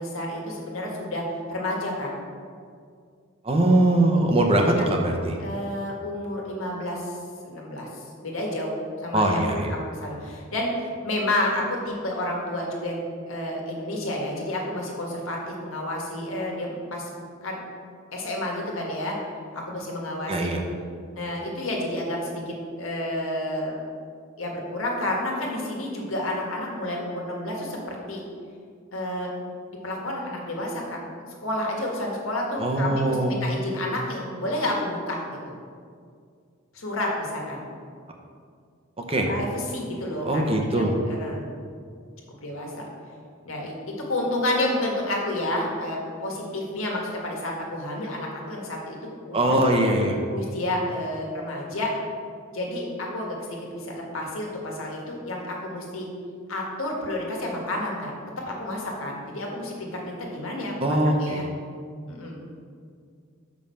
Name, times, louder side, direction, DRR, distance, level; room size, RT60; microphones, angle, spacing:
voice 1, 0.0-2.1 5.4-7.2 7.4-13.0 13.3-17.1 17.4-17.6 18.1-19.1 19.5-20.5 21.1-23.7 24.4-28.2 28.9-29.3 29.7-31.0 31.4-35.4 36.7-37.6 39.3-41.4 42.4-42.8 43.4-49.6 50.3-51.9 52.5-53.4 53.7-56.1 56.5-58.1 58.4-61.4 62.1-62.4, left 1 dB, 85° left, -1 dB, 1.6 m, -30 dB
voice 2, 3.4-5.4 9.1-9.7 20.3-20.6 32.6-33.4 39.1-39.3 40.2-40.9 49.3-50.2 60.8-61.5, right 1 dB, 30° right, 2 dB, 0.8 m, -21 dB
6.4 x 5.3 x 5.6 m, 2.2 s
head